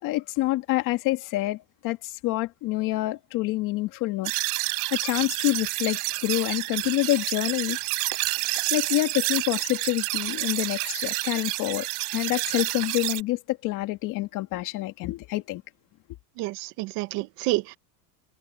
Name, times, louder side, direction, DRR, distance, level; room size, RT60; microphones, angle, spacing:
voice 1, 0.0-4.3 4.9-7.8 8.7-15.6, left 18 dB, 40° left, 2.5 m, -27 dB
sound 1, 4.2-13.2, right 26 dB, 60° right, 5.4 m, -29 dB
voice 2, 16.4-17.8, right 20 dB, 45° right, 1.9 m, -29 dB
supercardioid pair, 165°, 50 cm